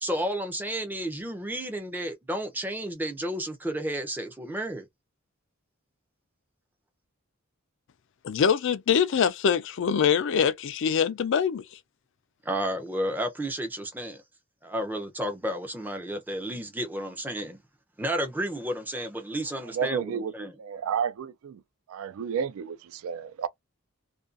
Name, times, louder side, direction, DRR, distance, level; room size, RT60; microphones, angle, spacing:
voice 1, 0.0-4.9 12.4-14.2 14.6-17.6 18.0-20.5, equal, 10° right, 0.5 m, -32 dB
voice 2, 8.2-11.6, left 7 dB, 60° left, 0.4 m, -24 dB
voice 3, 19.7-20.3 20.6-21.6 21.9-23.5, right 7 dB, 70° right, 0.3 m, -31 dB
2.5 x 2.2 x 2.4 m
head